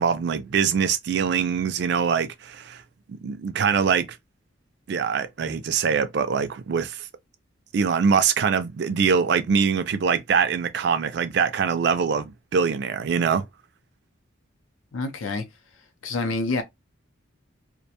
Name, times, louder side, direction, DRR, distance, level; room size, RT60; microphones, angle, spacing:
voice 1, 0.0-2.8 3.1-4.1 4.9-7.1 7.7-13.4, right 6 dB, 55° right, 0.3 m, -23 dB
voice 2, 14.9-15.4 16.0-16.6, left 3 dB, 80° left, 0.5 m, -27 dB
2.4 x 2.1 x 2.8 m
head